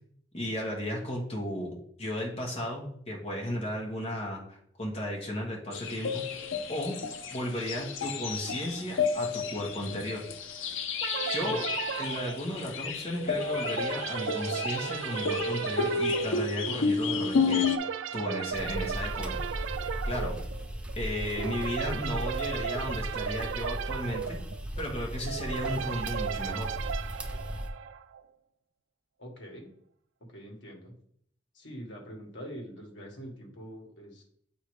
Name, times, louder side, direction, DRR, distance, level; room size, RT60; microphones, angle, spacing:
voice 1, 0.3-6.2 6.7-7.0 7.3-10.3 11.3-11.6 11.9-17.7 18.1-19.4 20.0-20.4 21.0-24.4 24.8-26.7, equal, 30° left, -2 dB, 1.3 m, -34 dB
sound 1, 5.7-17.8, left 4 dB, 90° left, 0.6 m, -31 dB
sound 2, 11.0-28.2, right 7 dB, 85° right, 0.3 m, -36 dB
sound 3, 18.5-27.7, equal, 5° right, 0.5 m, -37 dB
voice 2, 29.2-29.7 30.3-30.9 31.5-34.2, equal, 70° left, 0 dB, 1.4 m, -44 dB
8.0 x 2.8 x 4.7 m, 0.65 s
head